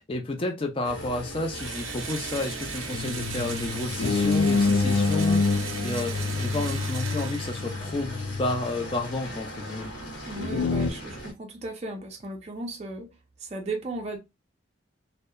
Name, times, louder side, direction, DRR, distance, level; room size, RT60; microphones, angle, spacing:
voice 1, 0.1-9.9, left 2 dB, 25° left, 0.4 m, -31 dB
sound 1, 0.8-11.3, equal, 65° left, 1.0 m, -39 dB
Engine / Drill, 1.5-8.1, right 6 dB, 85° right, 0.5 m, -38 dB
sound 2, 2.9-9.0 10.4-10.9, left 3 dB, 85° left, 0.4 m, -27 dB
voice 2, 10.3-13.1 13.4-14.2, right 2 dB, 30° right, 0.4 m, -36 dB
2.7 x 2.1 x 2.2 m
head